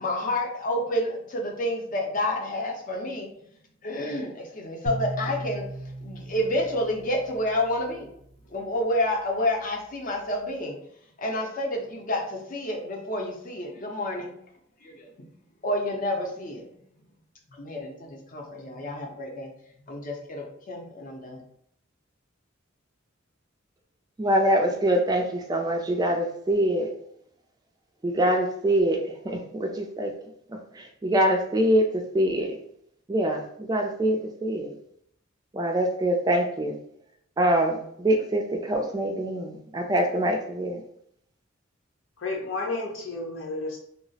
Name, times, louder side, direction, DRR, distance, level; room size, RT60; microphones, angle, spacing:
voice 1, 0.0-3.3 3.8-5.7 6.0-8.1 8.5-10.8 11.2-14.3 14.8-15.3 15.6-16.7 17.5-19.5 19.9-21.4, left 1 dB, 40° left, 1 dB, 0.6 m, -29 dB
sound 1, 4.9-8.1, right 1 dB, 75° right, 0.5 m, -37 dB
voice 2, 24.2-26.9 28.0-30.1 30.7-32.5 33.1-34.7 35.5-36.8 37.4-40.8, right 1 dB, 20° right, 3 dB, 0.3 m, -24 dB
voice 3, 42.2-43.8, left 2 dB, 80° left, -1 dB, 0.8 m, -31 dB
2.4 x 2.0 x 3.9 m, 0.69 s
head